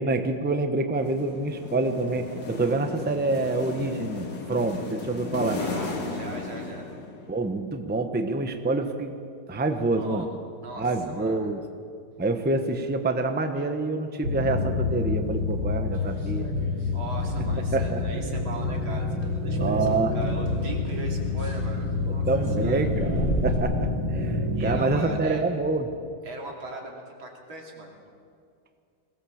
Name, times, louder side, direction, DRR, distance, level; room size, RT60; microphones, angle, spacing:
voice 1, 0.0-5.6 7.3-9.1 9.5-10.3 10.8-11.6 12.2-16.5 17.7-18.0 19.6-20.1 22.1-25.9, right 2 dB, 10° right, 7 dB, 0.7 m, -27 dB
sound 1, 0.9-7.4, left 3 dB, 55° left, 2.3 m, -35 dB
voice 2, 5.6-6.8 9.9-10.3 10.6-11.5 13.6-13.7 16.9-19.1 19.3-19.9 20.1-22.3 22.6-22.9 24.6-25.4 26.3-27.9, right 2 dB, 90° right, 0 dB, 3.7 m, -39 dB
sound 2, 14.2-25.0, left 2 dB, 70° right, 4.4 m, -27 dB
sound 3, 15.5-17.0 17.2-17.6 17.9-18.1 18.5-23.6, equal, 35° left, 2.7 m, -37 dB
21.0 x 18.0 x 7.2 m, 2.3 s
omnidirectional pair, 2.1 m